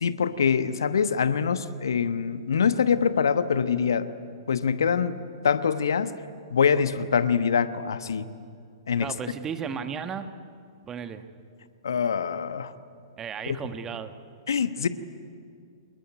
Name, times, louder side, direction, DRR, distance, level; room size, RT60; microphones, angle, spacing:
voice 1, 0.0-4.1 4.5-5.2 5.4-6.1 6.5-8.3 8.9-9.1 11.8-12.7 13.5-13.6 14.5-14.9, left 6 dB, 65° left, 12 dB, 1.1 m, -24 dB
voice 2, 9.0-10.3 10.9-11.2 13.2-14.1, right 7 dB, 20° right, 9 dB, 1.4 m, -34 dB
26.5 x 21.5 x 9.5 m, 2.3 s
figure-of-eight pair, 110°, 2 cm